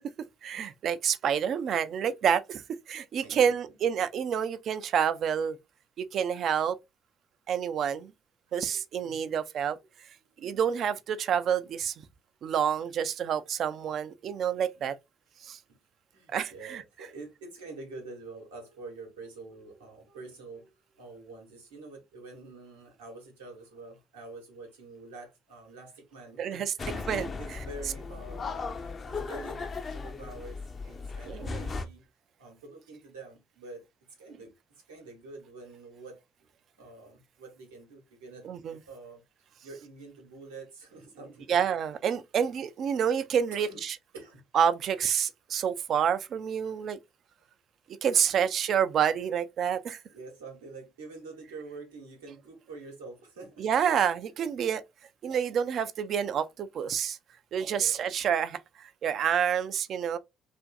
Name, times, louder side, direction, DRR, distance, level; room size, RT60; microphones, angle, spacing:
voice 1, 0.4-5.6 6.0-6.8 7.5-8.1 8.5-9.8 10.4-11.9 12.4-15.0 15.4-15.6 16.3-16.8 26.4-26.7 27.1-27.3 31.3-31.7 38.4-38.8 41.5-44.0 44.5-47.0 48.0-50.0 53.6-54.8 55.2-57.2 57.5-60.2, right 8 dB, 55° right, 0.3 m, -28 dB
voice 2, 3.2-3.7 8.5-9.3 10.2-10.6 15.7-15.8 16.1-30.6 30.9-32.0 32.4-33.9 34.2-34.5 34.9-36.2 36.8-41.6 43.5-43.8 44.1-44.4 48.2-48.4 50.1-53.7 57.6-58.1, right 3 dB, 85° right, 0.9 m, -47 dB
sound 1, 26.8-31.9, left 4 dB, 40° left, 0.5 m, -37 dB
2.5 x 2.5 x 2.2 m
figure-of-eight pair, 50°, 0 cm